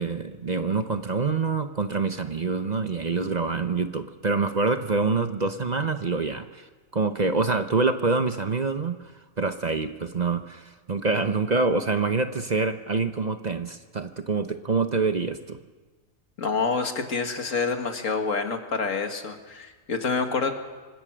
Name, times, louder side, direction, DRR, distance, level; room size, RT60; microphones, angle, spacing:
voice 1, 0.0-6.7 6.9-9.0 9.4-15.6, right 4 dB, 40° right, 9 dB, 0.8 m, -26 dB
voice 2, 16.4-20.5, left 4 dB, 80° left, 5 dB, 2.2 m, -27 dB
26.0 x 16.0 x 6.2 m, 1.3 s
omnidirectional pair, 1.3 m